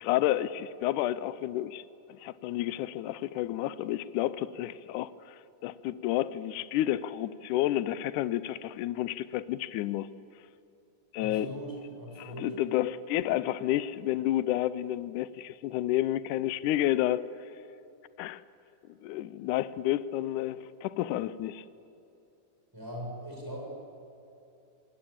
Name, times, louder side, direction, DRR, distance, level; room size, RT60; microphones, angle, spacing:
voice 1, 0.0-1.8 2.1-5.1 5.6-10.1 11.1-11.5 12.2-17.2 18.2-18.4 19.0-21.7, left 13 dB, 75° left, 15 dB, 2.1 m, -30 dB
voice 2, 11.2-12.6 22.7-23.7, equal, 5° right, -2 dB, 7.4 m, -40 dB
27.0 x 20.0 x 8.7 m, 2.7 s
omnidirectional pair, 3.8 m